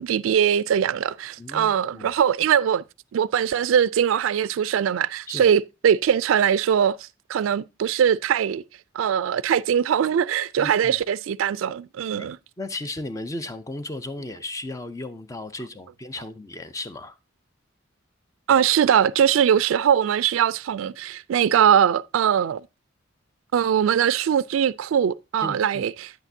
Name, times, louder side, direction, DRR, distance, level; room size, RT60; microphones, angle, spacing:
voice 1, 0.0-2.8 3.1-7.0 7.3-8.6 8.9-12.4 18.5-22.6 23.5-26.1, right 8 dB, 90° right, 0.3 m, -21 dB
voice 2, 1.4-2.1 5.3-5.5 10.6-11.0 12.2-12.3 12.6-17.1 25.4-25.9, left 2 dB, 15° left, 0.5 m, -35 dB
8.9 x 8.2 x 2.6 m
head